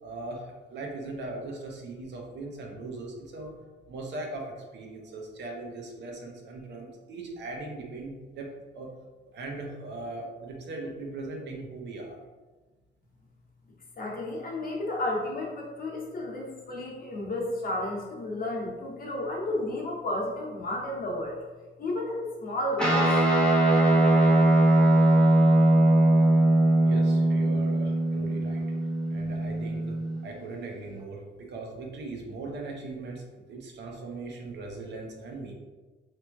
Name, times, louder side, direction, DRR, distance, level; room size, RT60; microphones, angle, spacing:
voice 1, 0.0-3.6 3.9-8.5 8.7-8.9 9.3-12.2 26.8-28.6 29.1-30.0 30.2-35.5, right 2 dB, 60° right, 0 dB, 0.6 m, -39 dB
voice 2, 14.0-21.4 21.8-23.1, left 1 dB, 45° left, -2 dB, 0.8 m, -32 dB
Guitar, 22.8-30.4, right 1 dB, 5° left, 0.6 m, -21 dB
3.0 x 2.6 x 2.2 m, 1.3 s
cardioid pair, 90°, 20 cm